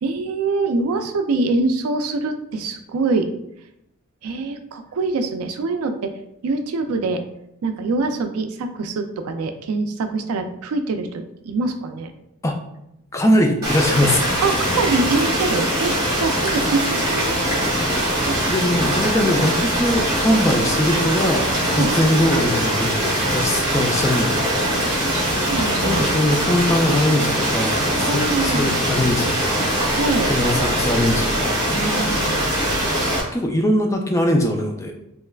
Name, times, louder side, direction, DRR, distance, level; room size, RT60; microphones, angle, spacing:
voice 1, 0.0-3.3 4.2-6.1 6.4-7.2 7.6-12.1 14.4-17.4 21.7-21.9 25.0-26.2 28.1-28.8 30.0-30.3 31.7-32.4, right 3 dB, 80° right, 7 dB, 0.4 m, -24 dB
voice 2, 13.1-14.5 18.2-25.2 25.8-31.8 33.3-34.9, left 1 dB, 15° left, 2 dB, 0.3 m, -22 dB
sound 1, 13.6-33.2, right 1 dB, 20° right, 1.1 m, -22 dB
3.2 x 3.0 x 2.3 m, 0.82 s
head